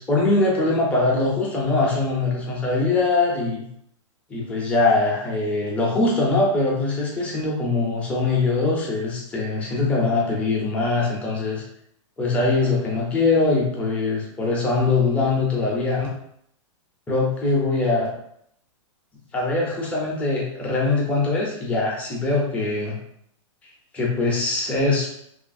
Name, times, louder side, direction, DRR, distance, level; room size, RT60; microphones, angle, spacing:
voice 1, 0.0-3.7 4.3-11.6 12.2-16.1 17.1-18.1 19.3-23.0 23.9-25.1, left 3 dB, 10° left, -3 dB, 0.4 m, -22 dB
2.8 x 2.3 x 2.5 m, 0.72 s
hypercardioid pair, 165°, 17 cm